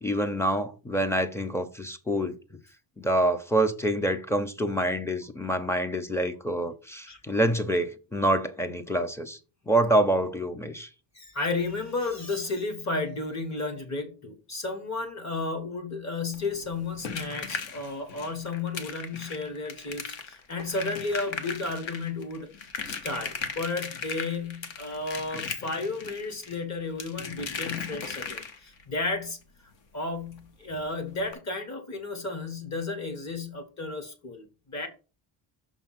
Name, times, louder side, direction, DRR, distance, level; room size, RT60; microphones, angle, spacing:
voice 1, 0.0-2.4 3.0-9.4 9.7-10.9, right 1 dB, 5° left, 0.5 m, -26 dB
voice 2, 11.1-22.5 22.8-29.4 29.9-34.9, left 3 dB, 35° left, 1.4 m, -33 dB
sound 1, 16.3-28.8 30.3-30.4 30.7-30.8 31.2-31.3, left 5 dB, 65° left, 1.3 m, -38 dB
6.4 x 3.5 x 5.7 m
cardioid pair, 150°, 49 cm